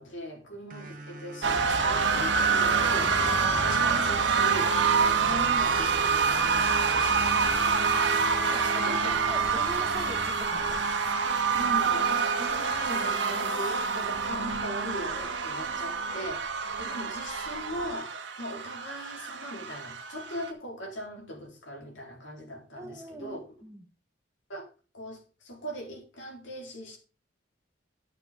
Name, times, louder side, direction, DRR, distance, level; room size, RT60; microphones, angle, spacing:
voice 1, 0.0-7.8 8.5-9.2 11.5-16.4 16.8-18.1 18.4-23.5 24.5-24.7 24.9-27.0, equal, 80° left, 1 dB, 3.9 m, -40 dB
sound 1, 0.7-11.7, right 1 dB, 45° right, 1.4 m, -44 dB
sound 2, 1.4-20.5, right 5 dB, 70° right, 1.6 m, -26 dB
voice 2, 8.5-10.8 13.4-13.5 22.8-23.9, right 1 dB, 15° right, 6 dB, 1.2 m, -42 dB
10.5 x 9.2 x 3.7 m, 0.33 s
head